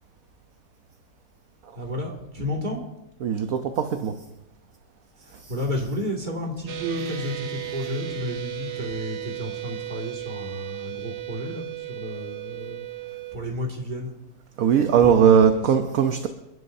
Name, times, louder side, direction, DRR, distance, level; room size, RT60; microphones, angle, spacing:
voice 1, 1.7-2.8 5.1-14.2 14.8-15.8, left 1 dB, 25° right, -1 dB, 2.4 m, -32 dB
voice 2, 3.2-4.2 5.3-5.5 14.6-16.3, right 7 dB, 60° right, 6 dB, 1.1 m, -19 dB
sound 1, 6.7-13.4, right 13 dB, 85° right, 1.9 m, -35 dB
29.5 x 11.0 x 2.7 m, 0.94 s
omnidirectional pair, 1.9 m